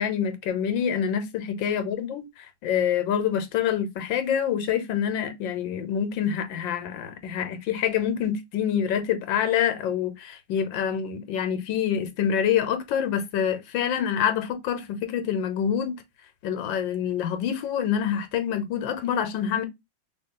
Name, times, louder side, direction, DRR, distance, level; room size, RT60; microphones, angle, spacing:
voice 1, 0.0-16.0 16.4-19.6, left 8 dB, 80° left, 1.4 m, -26 dB
3.1 x 2.9 x 3.7 m
omnidirectional pair, 2.1 m